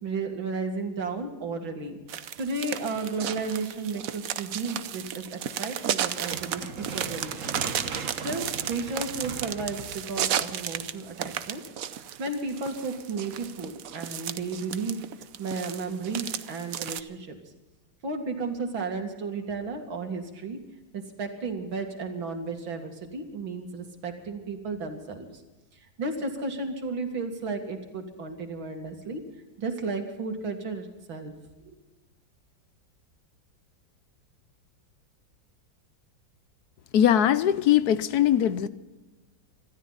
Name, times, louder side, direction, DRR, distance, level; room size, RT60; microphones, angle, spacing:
voice 1, 0.0-2.0 2.4-7.5 8.2-11.6 12.2-15.0 15.4-17.4 18.0-20.6 20.9-25.4 26.0-29.2 29.6-31.3 31.7-31.8, right 3 dB, 90° right, 2.9 m, -33 dB
sound 1, 2.1-17.0, right 9 dB, 60° right, 1.0 m, -34 dB
sound 2, 6.0-11.1, right 5 dB, 45° right, 1.5 m, -38 dB
voice 2, 36.9-38.7, left 10 dB, 65° left, 1.1 m, -21 dB
26.0 x 13.5 x 4.1 m
omnidirectional pair, 2.1 m